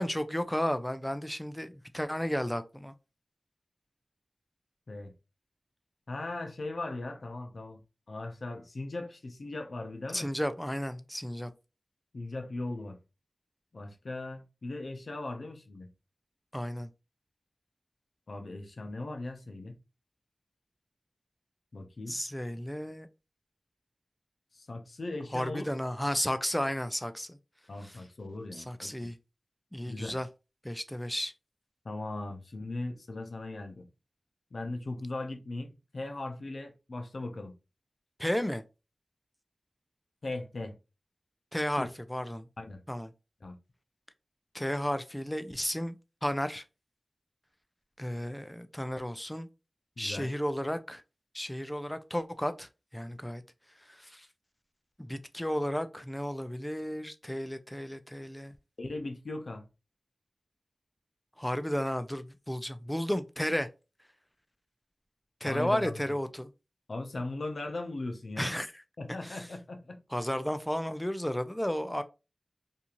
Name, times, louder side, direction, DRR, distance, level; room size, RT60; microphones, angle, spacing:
voice 1, 0.0-2.9 10.1-11.5 16.5-16.9 22.1-23.1 25.3-27.4 27.8-28.0 28.6-29.2 29.7-30.3 30.6-31.3 38.2-38.6 41.5-42.5 42.9-43.1 44.5-46.0 46.2-46.6 48.0-49.5 50.0-51.0 51.3-53.4 53.9-54.3 55.0-58.5 61.4-63.7 65.4-66.5 68.4-68.7 69.2-69.5 70.1-72.0, equal, 10° left, 0.4 m, -33 dB
voice 2, 6.1-7.8 8.1-10.3 12.1-13.0 13.7-15.9 18.3-19.8 21.7-22.2 24.5-25.7 27.7-29.1 29.9-30.2 31.8-33.8 34.5-37.5 40.2-40.8 41.8-41.9 42.6-42.8 43.4-43.5 50.0-50.3 58.8-59.7 65.4-65.9 66.9-68.5 69.0-70.0, left 2 dB, 75° left, 0.5 m, -38 dB
2.6 x 2.4 x 2.8 m
wide cardioid pair, 50°, 0 cm